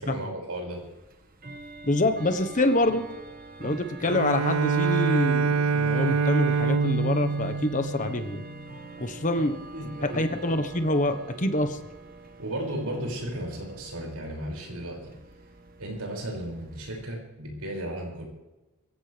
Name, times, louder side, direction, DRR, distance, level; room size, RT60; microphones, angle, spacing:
voice 1, 0.0-0.8 9.7-10.2 12.4-15.1 15.8-18.2, right 1 dB, 85° right, -1 dB, 6.4 m, -34 dB
Bell / Tick-tock, 0.7-17.1, right 2 dB, 40° right, 1.8 m, -44 dB
voice 2, 1.8-3.1 3.6-8.4 9.0-9.5 10.0-11.8, left 1 dB, 35° left, 8 dB, 1.3 m, -26 dB
Bowed string instrument, 4.1-8.7, right 4 dB, 65° right, 0.6 m, -25 dB
22.5 x 16.0 x 3.5 m, 1.0 s
head